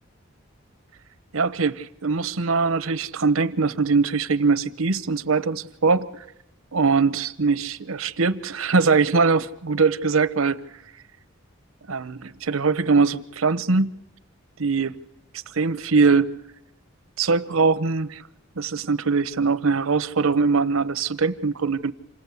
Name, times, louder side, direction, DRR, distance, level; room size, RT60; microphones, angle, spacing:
voice 1, 1.3-6.1 6.7-10.6 11.9-13.9 14.6-14.9 15.3-16.3 17.2-18.2 18.6-21.9, right 4 dB, 85° right, 0.9 m, -22 dB
28.0 x 19.0 x 8.3 m
head